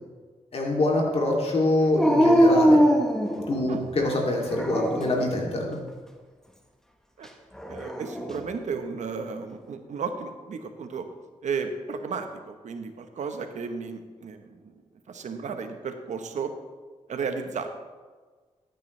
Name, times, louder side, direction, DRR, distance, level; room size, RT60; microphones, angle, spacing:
voice 1, 0.5-2.8 3.5-5.8, left 1 dB, 55° left, -1 dB, 2.7 m, -25 dB
Dog, 2.0-3.9 4.5-5.3 7.6-8.4, equal, 5° left, 1.2 m, -21 dB
voice 2, 7.7-11.0 11.4-14.6 15.1-16.5 17.1-17.7, right 5 dB, 75° right, 7 dB, 1.0 m, -33 dB
13.5 x 9.2 x 3.3 m, 1.4 s
cardioid pair, 75°, 12 cm